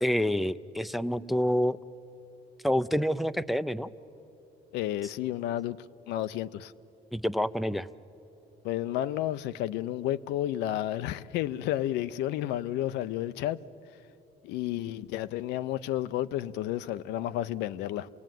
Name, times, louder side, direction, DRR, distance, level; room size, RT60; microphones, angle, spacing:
voice 1, 0.0-1.8 2.6-3.9 7.1-7.9, equal, ahead, 12 dB, 0.5 m, -27 dB
voice 2, 4.7-5.8 6.1-6.7 8.6-13.6 14.4-18.1, left 13 dB, 85° left, 12 dB, 0.6 m, -31 dB
26.5 x 18.5 x 9.2 m, 3.0 s
cardioid pair, 110°, 17 cm